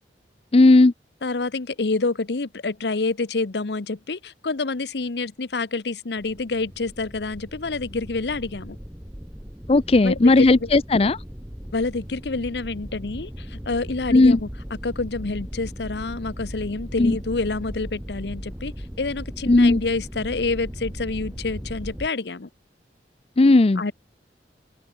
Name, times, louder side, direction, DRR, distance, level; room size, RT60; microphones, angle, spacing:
voice 1, 0.5-0.9 9.7-11.2 14.1-14.4 17.0-17.2 19.5-19.8 23.4-23.8, left 2 dB, 35° left, 0.5 m, -15 dB
voice 2, 1.2-8.8 10.0-10.7 11.7-14.5 14.8-22.5 23.8-23.9, left 3 dB, 70° left, 0.9 m, -28 dB
sound 1, 6.2-22.1, equal, 10° right, 2.0 m, -37 dB
open air
head